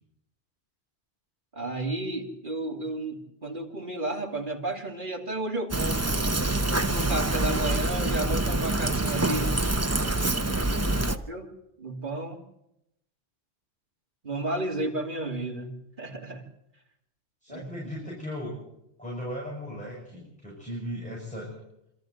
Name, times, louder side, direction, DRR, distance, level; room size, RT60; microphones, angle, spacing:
voice 1, 1.5-6.1 6.5-9.6 10.4-10.7 11.1-11.5 11.8-12.4 14.2-16.4 17.5-17.6, right 2 dB, 50° right, 1 dB, 3.2 m, -33 dB
Fill (with liquid), 5.7-11.2, right 2 dB, 15° right, 0.7 m, -26 dB
voice 2, 10.6-11.0 17.4-18.5 19.0-21.5, left 1 dB, 5° left, -4 dB, 6.9 m, -37 dB
27.0 x 14.0 x 7.9 m, 0.82 s
omnidirectional pair, 1.1 m